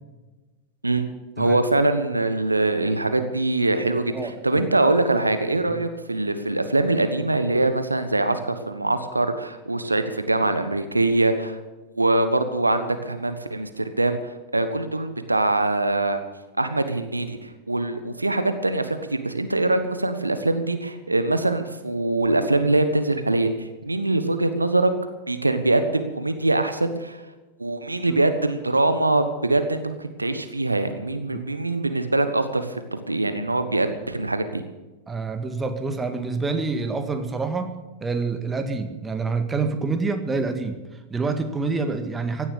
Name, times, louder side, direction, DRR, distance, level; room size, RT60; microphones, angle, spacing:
voice 1, 1.4-11.6 12.0-16.2 16.6-24.9 25.3-27.2 27.6-34.6, right 2 dB, 85° right, 9 dB, 1.2 m, -23 dB
voice 2, 4.1-4.7 5.7-5.8 28.1-28.2 31.3-31.5 35.1-37.7 38.0-40.8 41.1-42.5, right 4 dB, 15° right, 7 dB, 1.8 m, -27 dB
16.5 x 11.0 x 6.7 m, 1.2 s
figure-of-eight pair, 90°, 0 cm